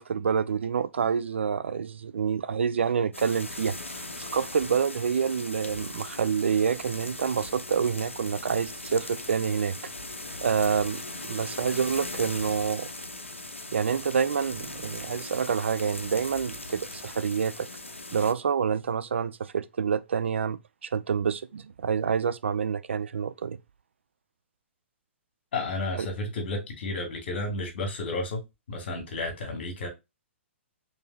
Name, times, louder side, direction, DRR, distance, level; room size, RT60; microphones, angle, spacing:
voice 1, 0.0-9.8 10.4-12.9 13.7-17.7 18.1-23.6 26.0-26.1, right 6 dB, 70° right, 0.4 m, -27 dB
sound 1, 3.1-18.3, left 2 dB, 90° left, 0.6 m, -39 dB
voice 2, 25.5-28.4 28.7-29.9, left 2 dB, 55° left, 1.9 m, -32 dB
4.4 x 3.2 x 2.2 m
figure-of-eight pair, 120°, 7 cm